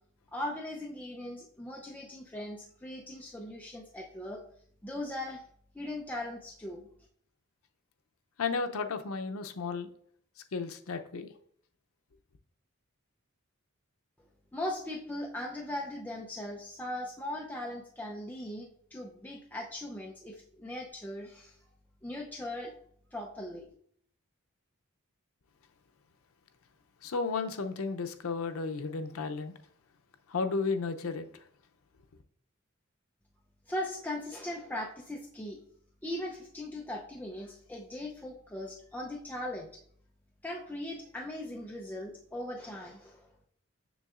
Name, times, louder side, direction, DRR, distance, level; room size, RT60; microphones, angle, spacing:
voice 1, 0.3-4.4 4.8-5.4 5.7-6.9 14.5-21.5 22.0-22.7 23.1-23.7 33.7-35.6 36.0-39.7 40.4-43.3, left 1 dB, 10° left, 0.5 m, -39 dB
voice 2, 8.4-9.9 10.5-11.3 27.0-29.5 30.3-31.3, left 4 dB, 90° left, 0.6 m, -33 dB
7.0 x 6.2 x 2.4 m
head